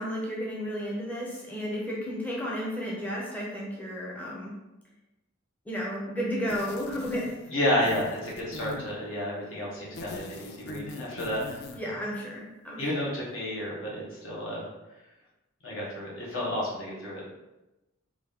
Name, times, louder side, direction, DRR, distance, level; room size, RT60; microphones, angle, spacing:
voice 1, 0.0-4.5 5.7-7.3 11.7-13.1, equal, 10° left, -5 dB, 0.6 m, -33 dB
sound 1, 6.5-7.5 7.8-9.0 9.8-11.9, left 3 dB, 55° left, 0.4 m, -41 dB
voice 2, 7.5-11.8 12.8-14.7 15.6-17.3, left 1 dB, 70° left, -5 dB, 1.3 m, -31 dB
3.5 x 2.6 x 3.4 m, 1.0 s
head